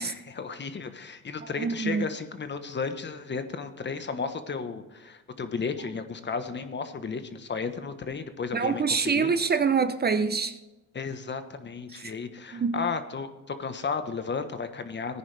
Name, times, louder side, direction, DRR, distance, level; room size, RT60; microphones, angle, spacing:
voice 1, 0.0-9.3 10.9-15.2, left 5 dB, 35° left, 1.3 m, -34 dB
voice 2, 1.6-2.0 8.5-10.5 12.0-12.1 12.5-12.8, right 5 dB, 35° right, 0.8 m, -25 dB
15.5 x 10.0 x 3.4 m
cardioid pair, 90°, 30 cm